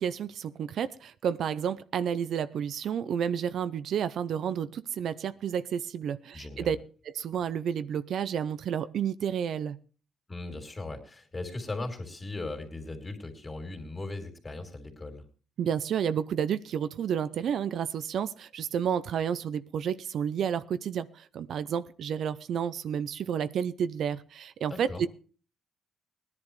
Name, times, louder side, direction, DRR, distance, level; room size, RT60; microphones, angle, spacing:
voice 1, 0.0-6.8 7.1-9.8 15.6-25.1, right 8 dB, 65° right, 0.6 m, -31 dB
voice 2, 6.3-6.7 10.3-15.2 24.7-25.0, left 2 dB, 25° left, 3.3 m, -38 dB
19.0 x 10.5 x 3.2 m
cardioid pair, 90°, 0 cm